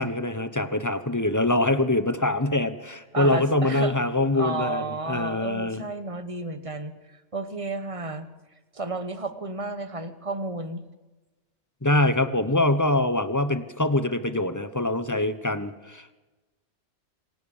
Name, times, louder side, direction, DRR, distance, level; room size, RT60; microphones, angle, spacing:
voice 1, 0.0-5.9 11.8-16.1, left 2 dB, 15° left, 12 dB, 1.0 m, -24 dB
voice 2, 3.1-3.9 4.4-6.9 7.3-8.3 8.7-10.8, right 2 dB, 30° right, 11 dB, 1.3 m, -32 dB
26.5 x 17.0 x 7.3 m, 1.2 s
omnidirectional pair, 1.2 m